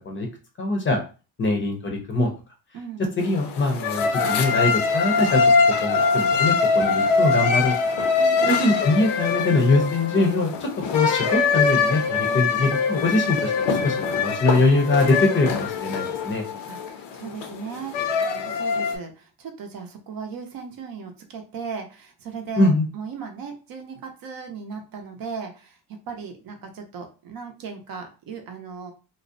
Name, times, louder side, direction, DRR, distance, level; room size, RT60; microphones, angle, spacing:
voice 1, 0.6-1.0 1.4-2.3 3.2-5.5 5.8-8.0 8.4-16.4 22.6-22.9, left 2 dB, 30° left, 2 dB, 0.5 m, -23 dB
voice 2, 2.7-3.1 8.2-8.6 12.2-12.5 16.7-28.9, right 6 dB, 55° right, 5 dB, 0.6 m, -37 dB
sound 1, 3.2-19.0, left 5 dB, 75° left, 0.6 m, -23 dB
2.5 x 2.0 x 2.5 m, 0.34 s
cardioid pair, 125°, 42 cm